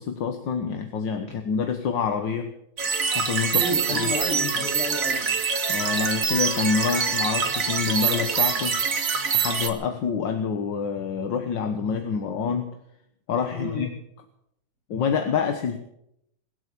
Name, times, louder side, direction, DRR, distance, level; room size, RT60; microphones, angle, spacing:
voice 1, 0.0-2.5 3.1-3.6 3.9-4.1 5.7-8.8 9.3-12.8 13.3-13.9 14.9-15.8, left 6 dB, 65° left, 6 dB, 1.9 m, -27 dB
sound 1, 2.8-9.7, right 6 dB, 45° right, 2.1 m, -25 dB
voice 2, 3.5-5.2 13.5-13.8, left 1 dB, 30° left, -1 dB, 6.7 m, -30 dB
21.5 x 7.9 x 8.4 m, 0.77 s
omnidirectional pair, 2.2 m